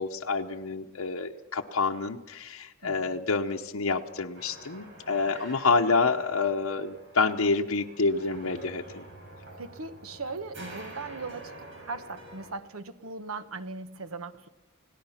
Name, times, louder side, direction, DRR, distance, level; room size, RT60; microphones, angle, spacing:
voice 1, 0.0-9.0, left 4 dB, 85° left, 0.9 m, -28 dB
voice 2, 2.8-3.1 9.6-11.5 11.9-14.5, right 3 dB, 80° right, 1.2 m, -39 dB
sound 1, 4.3-12.5, right 1 dB, 60° right, 7.4 m, -47 dB
29.0 x 18.0 x 5.8 m
head